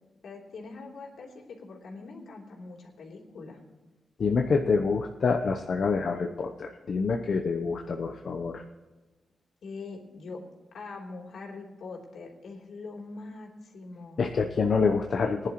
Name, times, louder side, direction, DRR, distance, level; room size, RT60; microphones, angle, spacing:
voice 1, 0.2-3.6 9.6-10.4 10.7-14.2, left 3 dB, 75° left, -2 dB, 3.4 m, -43 dB
voice 2, 4.2-8.6 14.2-15.5, left 4 dB, 55° left, 3 dB, 0.9 m, -26 dB
19.5 x 11.0 x 3.1 m, 1.2 s
cardioid pair, 100°, 0 cm